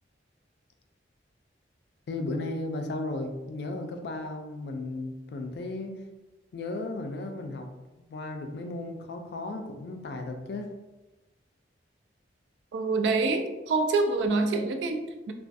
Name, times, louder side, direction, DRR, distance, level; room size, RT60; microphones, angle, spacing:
voice 1, 2.1-6.0 6.5-7.7 8.0-10.7, left 2 dB, 60° left, 4 dB, 0.3 m, -35 dB
voice 2, 12.7-15.3, right 3 dB, 80° right, 6 dB, 0.3 m, -26 dB
2.3 x 2.3 x 2.5 m, 1.1 s
head